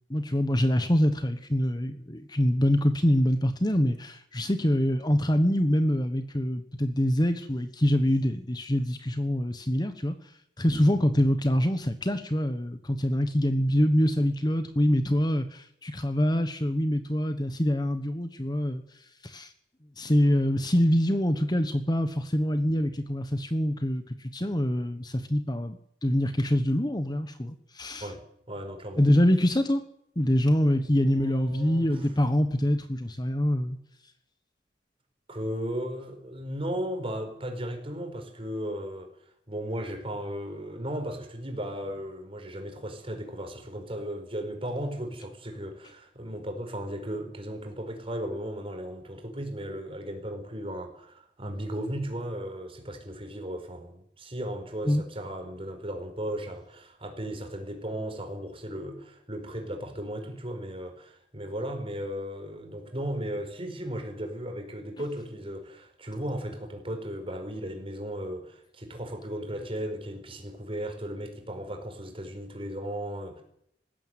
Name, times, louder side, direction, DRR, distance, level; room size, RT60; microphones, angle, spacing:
voice 1, 0.1-10.1 10.6-18.8 19.2-19.5 20.0-28.1 29.0-29.8 30.2-33.8 54.9-55.0, equal, 25° left, 9 dB, 1.2 m, -25 dB
voice 2, 28.5-29.0 30.8-32.0 35.3-39.1 39.5-73.4, equal, 30° right, 4 dB, 5.0 m, -36 dB
19.5 x 16.0 x 9.2 m, 0.71 s
head